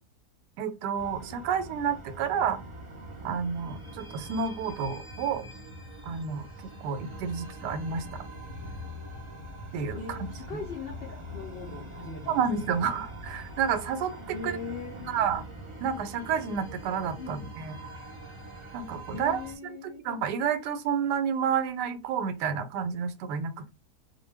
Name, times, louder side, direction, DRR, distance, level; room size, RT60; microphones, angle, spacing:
voice 1, 0.6-2.6 3.2-5.4 6.0-6.4 6.8-8.1 9.7-10.3 12.3-14.1 14.4-14.5 15.1-15.4 15.8-17.8 18.7-19.4 20.0-23.8, right 7 dB, 90° right, 1.2 m, -30 dB
sound 1, 0.9-19.6, equal, 30° right, 0.6 m, -43 dB
voice 2, 9.9-12.7 14.3-15.2 17.2-17.4 19.1-20.0, left 4 dB, 75° left, 0.5 m, -40 dB
2.5 x 2.2 x 3.2 m
omnidirectional pair, 1.7 m